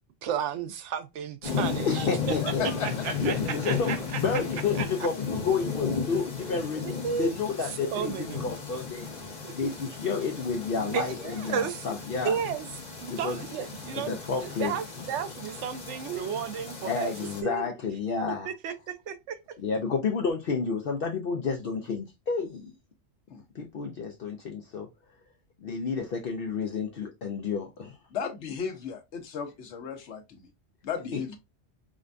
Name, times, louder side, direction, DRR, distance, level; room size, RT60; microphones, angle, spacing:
voice 1, 0.2-2.1 2.8-4.2 4.8-4.9 6.8-7.3 7.8-8.5 9.2-9.5 10.8-11.9 12.2-12.7 13.0-17.1 17.4-17.7 18.3-19.6, right 8 dB, 85° right, 1.0 m, -33 dB
sound 1, 1.4-17.4, left 5 dB, 40° left, 1.1 m, -35 dB
voice 2, 1.9-2.6 3.2-9.1 9.5-12.4 13.0-13.4 14.1-14.7 16.8-18.5 19.6-22.7 23.5-24.9 25.6-28.0 31.1-31.2, left 5 dB, 60° left, 0.8 m, -30 dB
voice 3, 2.4-3.2 23.3-23.4 28.1-30.5 30.8-31.4, left 6 dB, 75° left, 1.1 m, -35 dB
5.0 x 2.2 x 2.5 m
omnidirectional pair, 1.2 m